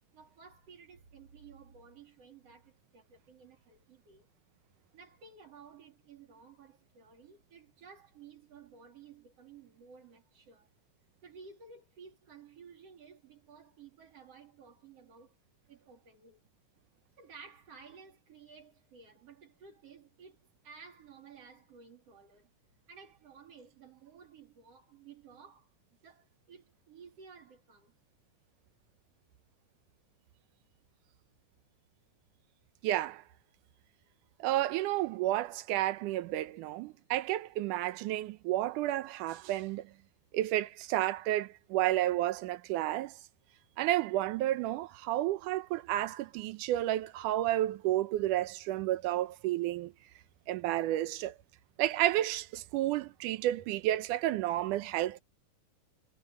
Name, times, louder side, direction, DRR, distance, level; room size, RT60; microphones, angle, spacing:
voice 1, 0.1-4.3 4.9-10.7 11.2-15.4 15.7-16.5 17.2-22.5 22.9-25.7 26.0-27.9, right 5 dB, 55° right, 3.8 m, -55 dB
voice 2, 32.8-33.2 34.4-39.9 40.3-43.2 43.8-49.9 50.5-51.4 51.8-55.2, right 14 dB, 85° right, 2.3 m, -31 dB
omnidirectional pair, 3.5 m